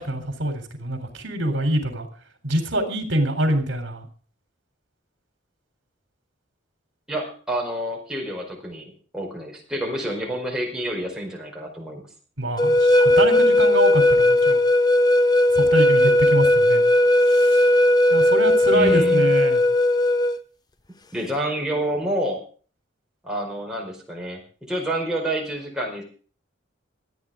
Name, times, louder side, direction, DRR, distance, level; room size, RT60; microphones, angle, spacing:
voice 1, 0.0-2.1 2.4-4.1 12.4-14.6 15.5-16.8 17.3-17.6 18.1-19.6, right 1 dB, 65° right, 6 dB, 3.7 m, -25 dB
voice 2, 7.1-12.0 18.7-19.3 21.1-22.4 23.2-26.0, right 1 dB, 5° right, -2 dB, 4.8 m, -28 dB
sound 1, 12.6-20.4, left 1 dB, 20° left, 0.7 m, -17 dB
27.0 x 9.2 x 3.7 m, 0.41 s
head